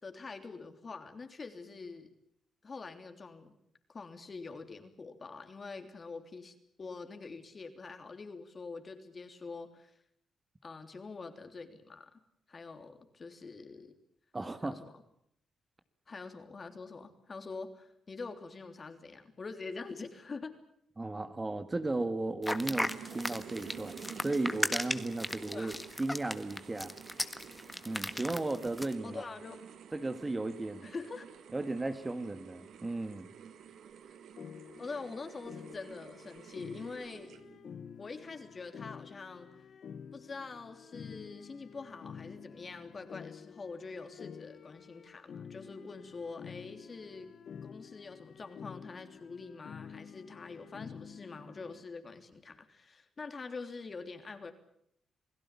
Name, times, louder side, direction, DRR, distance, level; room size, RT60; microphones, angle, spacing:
voice 1, 0.0-2.1 2.6-3.5 3.9-9.9 10.6-12.2 12.5-14.0 14.6-15.0 16.1-20.6 25.5-25.8 29.0-29.6 30.8-31.3 34.8-37.3 38.0-39.5 40.1-47.3 47.6-54.5, left 4 dB, 40° left, 7 dB, 3.3 m, -45 dB
voice 2, 14.3-14.8 21.0-25.7 26.0-26.9 27.8-29.2 29.9-30.9 31.5-33.3, right 2 dB, 20° right, 9 dB, 1.8 m, -35 dB
sound 1, 22.4-28.9, left 1 dB, 10° left, 1.6 m, -36 dB
sound 2, 22.6-37.7, right 8 dB, 80° right, 1.8 m, -50 dB
sound 3, 34.4-51.8, left 7 dB, 65° left, 1.4 m, -49 dB
28.0 x 17.5 x 8.5 m, 0.72 s
cardioid pair, 90°, 0 cm